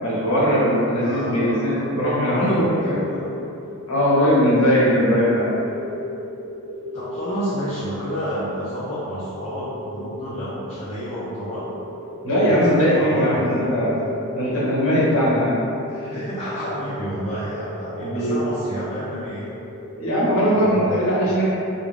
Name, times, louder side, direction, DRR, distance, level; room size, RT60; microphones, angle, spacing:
voice 1, 0.0-3.0 3.9-5.5 12.2-14.0 14.3-15.6 18.0-18.3 20.0-21.5, equal, 60° left, -8 dB, 0.8 m, -19 dB
voice 2, 1.0-1.9 2.2-3.3 6.9-11.7 12.5-13.6 15.9-19.5 20.4-21.0, equal, 30° left, -10 dB, 0.3 m, -30 dB
sound 1, 2.4-20.7, left 1 dB, 70° right, 0.5 m, -36 dB
2.4 x 2.1 x 3.1 m, 2.7 s
head